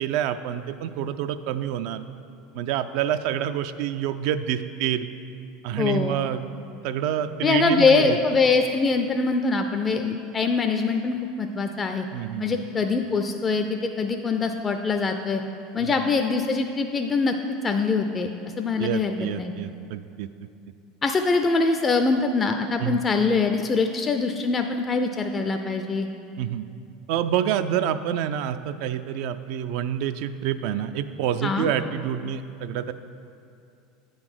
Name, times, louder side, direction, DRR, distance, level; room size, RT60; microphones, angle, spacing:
voice 1, 0.0-2.0 2.5-5.1 5.6-6.5 6.8-8.2 12.1-12.7 15.8-16.1 18.8-20.3 22.8-23.0 26.4-26.7 27.1-32.9, right 10 dB, 65° right, 10 dB, 0.3 m, -27 dB
voice 2, 5.8-6.2 7.4-12.1 12.4-15.4 15.7-17.4 17.6-18.3 18.6-19.5 21.0-26.1 31.4-31.7, left 4 dB, 25° left, 5 dB, 0.4 m, -23 dB
8.6 x 3.9 x 6.1 m, 2.5 s
hypercardioid pair, 95°, 0 cm